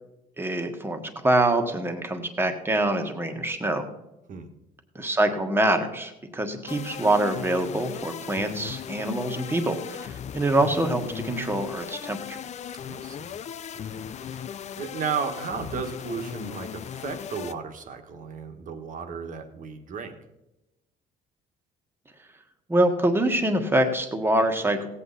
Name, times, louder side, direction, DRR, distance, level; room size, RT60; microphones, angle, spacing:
voice 1, 0.4-3.9 4.9-12.4 22.7-24.9, right 1 dB, 15° right, 5 dB, 1.5 m, -25 dB
sound 1, 6.7-17.5, left 9 dB, 40° left, 0.5 m, -37 dB
voice 2, 12.8-13.3 13.9-14.5 14.8-20.2, right 6 dB, 50° right, 6 dB, 1.6 m, -34 dB
16.5 x 8.3 x 4.1 m, 0.94 s
cardioid pair, 110°, 17 cm